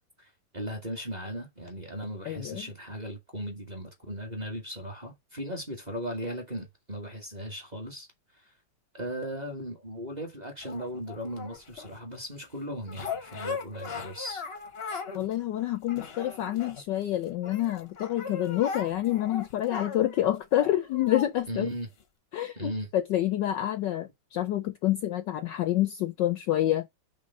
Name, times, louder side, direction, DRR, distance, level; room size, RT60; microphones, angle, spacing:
voice 1, 0.2-8.1 8.3-8.5 8.9-14.4 21.5-21.9 22.5-22.9, equal, 25° right, 1.2 m, -37 dB
voice 2, 2.3-2.7 15.1-21.7 22.3-26.9, left 13 dB, 75° left, 1.1 m, -28 dB
sound 1, 10.6-12.0 12.9-15.3 15.6-17.0 17.4-21.3 22.0-22.1, left 5 dB, 45° left, 0.7 m, -38 dB
5.5 x 3.3 x 5.3 m
omnidirectional pair, 2.4 m